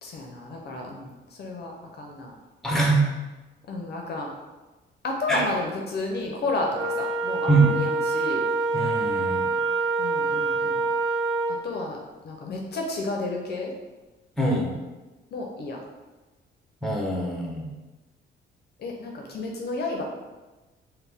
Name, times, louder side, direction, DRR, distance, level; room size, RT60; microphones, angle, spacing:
voice 1, 0.0-2.4 3.7-4.3 5.0-8.4 10.0-10.9 11.6-12.0 12.2-13.7 15.3-15.8 18.8-20.0, left 2 dB, 55° left, 1 dB, 0.6 m, -31 dB
voice 2, 2.6-3.0 5.3-5.4 7.5-7.7 8.7-9.5 14.4-14.7 16.8-17.7, right 3 dB, ahead, -2 dB, 0.9 m, -23 dB
Wind instrument woodwind instrument, 6.7-11.6, right 3 dB, 80° right, 0.9 m, -26 dB
4.2 x 2.1 x 3.4 m, 1.2 s
cardioid pair, 90°, 20 cm